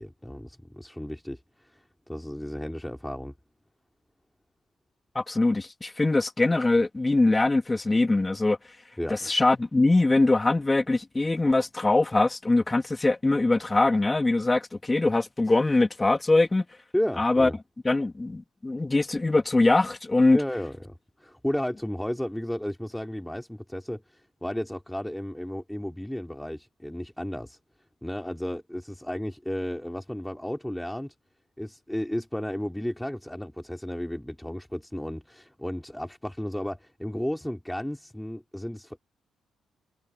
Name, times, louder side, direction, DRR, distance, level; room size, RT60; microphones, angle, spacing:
voice 1, 0.0-1.8 2.1-3.3 9.0-9.3 16.9-17.6 20.3-27.6 28.0-31.1 31.6-39.0, equal, 5° left, 3.4 m, -33 dB
voice 2, 5.1-8.6 9.1-16.6 17.2-17.5 17.8-20.4, left 2 dB, 25° left, 2.6 m, -22 dB
supercardioid pair, 55°, 0 cm